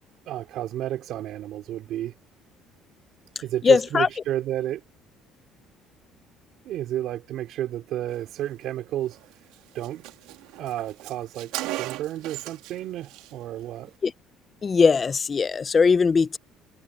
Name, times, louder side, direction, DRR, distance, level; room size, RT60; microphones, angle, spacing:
voice 1, 0.3-2.1 3.4-4.8 6.6-9.2 9.7-10.0 10.6-13.9, right 13 dB, 55° right, 3.4 m, -31 dB
voice 2, 3.6-4.1 14.0-14.1 14.6-16.4, left 5 dB, 20° left, 0.5 m, -19 dB
Car, 9.1-9.3 9.5-9.6 9.8-12.8 13.0-13.3, right 16 dB, 80° right, 1.8 m, -36 dB
cardioid pair, 165°, 0 cm